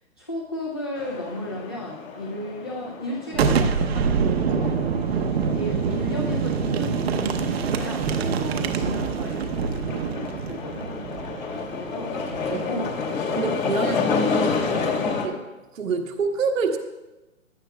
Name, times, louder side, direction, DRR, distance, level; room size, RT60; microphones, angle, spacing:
voice 1, 0.2-4.8 5.5-10.9 11.7-12.2 12.7-12.9 13.8-14.2 15.0-15.2, left 1 dB, 20° left, -3 dB, 0.4 m, -34 dB
sound 1, 1.0-15.3, left 4 dB, 75° left, 2.7 m, -30 dB
Boom, 3.3-12.9, right 6 dB, 50° right, 0.8 m, -25 dB
voice 2, 13.3-13.9 15.2-15.3 15.7-16.8, right 5 dB, 70° right, 3 dB, 1.4 m, -26 dB
15.5 x 9.9 x 2.2 m, 1.1 s
hypercardioid pair, 160°, 41 cm